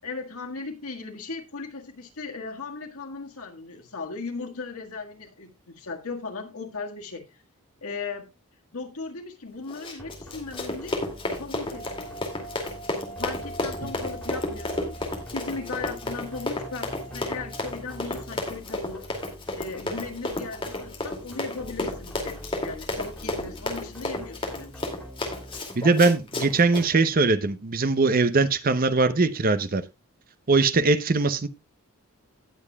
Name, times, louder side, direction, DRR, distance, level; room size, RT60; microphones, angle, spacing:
voice 1, 0.0-7.4 7.8-8.3 8.7-11.0 11.4-12.2 13.2-15.0 15.3-19.1 19.5-24.8, left 4 dB, 75° left, 1.7 m, -37 dB
Run, 9.7-26.9, left 2 dB, 25° left, 2.4 m, -32 dB
sound 1, 10.0-25.6, equal, 5° left, 3.0 m, -43 dB
sound 2, 11.7-17.8, right 2 dB, 70° right, 2.7 m, -44 dB
voice 2, 25.8-29.8 30.5-31.5, right 3 dB, 40° right, 0.7 m, -21 dB
18.0 x 7.2 x 2.3 m
head